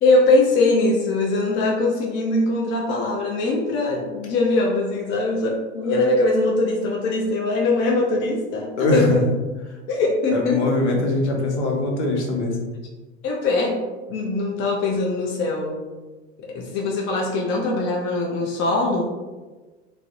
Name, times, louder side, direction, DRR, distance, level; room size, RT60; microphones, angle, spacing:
voice 1, 0.0-9.3 9.9-10.6 13.2-13.8 14.1-15.8 16.4-19.1, left 2 dB, 35° left, -2 dB, 0.4 m, -21 dB
voice 2, 8.8-9.2 10.3-12.7, left 2 dB, 85° left, 1 dB, 0.6 m, -22 dB
2.5 x 2.0 x 2.4 m, 1.3 s
hypercardioid pair, 80°, 34 cm